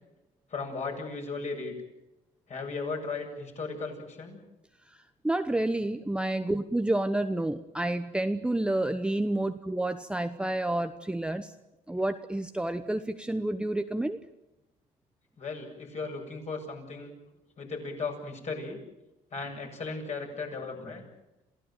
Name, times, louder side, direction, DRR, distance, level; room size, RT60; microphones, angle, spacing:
voice 1, 0.5-1.8 2.5-4.4 15.4-17.1 17.6-18.8 19.3-21.0, left 4 dB, 40° left, 2 dB, 7.7 m, -36 dB
voice 2, 5.2-11.5 11.9-14.2, right 1 dB, 5° right, 8 dB, 0.9 m, -29 dB
27.5 x 16.5 x 9.2 m, 0.95 s
cardioid pair, 110°, 17 cm